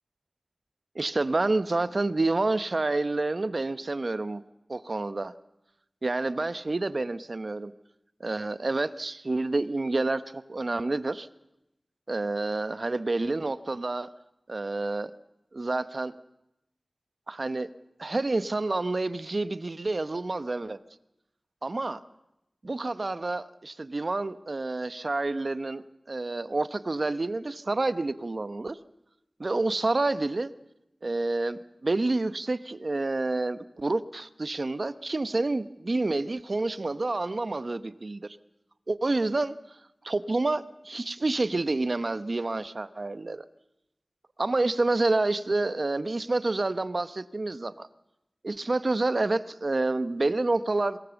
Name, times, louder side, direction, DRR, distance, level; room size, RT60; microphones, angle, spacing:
voice 1, 0.9-4.4 4.7-5.3 6.0-7.7 8.2-11.3 12.1-14.1 14.5-15.1 15.5-16.1 17.3-17.7 18.0-20.8 21.6-22.0 22.6-28.8 29.4-30.5 31.0-38.4 38.9-39.6 40.0-43.5 44.4-47.9 48.4-51.0, right 2 dB, 55° right, 13 dB, 1.0 m, -28 dB
23.0 x 18.5 x 7.2 m, 0.88 s
wide cardioid pair, 45°, 0 cm